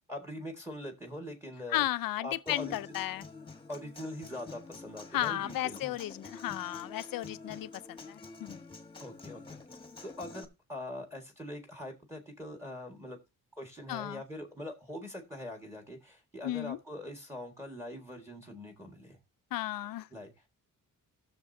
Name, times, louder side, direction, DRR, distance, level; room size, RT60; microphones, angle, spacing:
voice 1, 0.1-1.9 2.2-3.0 3.7-5.9 9.0-9.6 10.0-13.2 13.5-19.2 20.1-20.3, left 1 dB, 10° right, 1.7 m, -43 dB
voice 2, 1.7-3.2 5.1-8.6 13.9-14.2 16.4-16.8 19.5-20.1, left 14 dB, 80° left, 0.6 m, -34 dB
Human voice / Acoustic guitar, 2.5-10.4, left 3 dB, 15° left, 1.3 m, -48 dB
16.5 x 6.8 x 2.7 m
wide cardioid pair, 170°, 34 cm